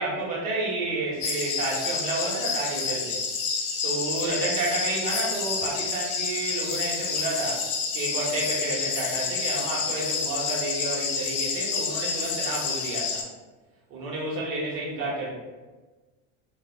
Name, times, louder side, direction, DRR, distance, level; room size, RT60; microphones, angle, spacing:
voice 1, 0.0-3.2 3.8-7.6 7.9-13.2 13.9-15.3, right 2 dB, 55° right, -4 dB, 1.3 m, -30 dB
sound 1, 1.2-13.2, left 5 dB, 75° left, 0.9 m, -29 dB
3.4 x 2.4 x 3.0 m, 1.2 s
supercardioid pair, 130°, 34 cm